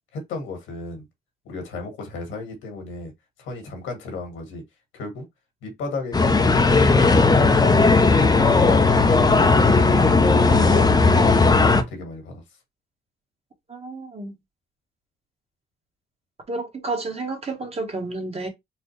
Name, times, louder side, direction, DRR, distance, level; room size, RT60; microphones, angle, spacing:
voice 1, 0.1-1.1 1.5-3.1 3.4-4.6 4.9-5.3 5.6-7.1 7.5-9.5 9.9-12.4, left 3 dB, 85° left, 1.7 m, -34 dB
sound 1, 6.1-11.8, left 3 dB, 20° left, 0.5 m, -16 dB
voice 2, 13.7-14.3 16.5-18.5, right 3 dB, 30° right, 1.2 m, -30 dB
4.1 x 2.1 x 3.2 m
cardioid pair, 90°, 20 cm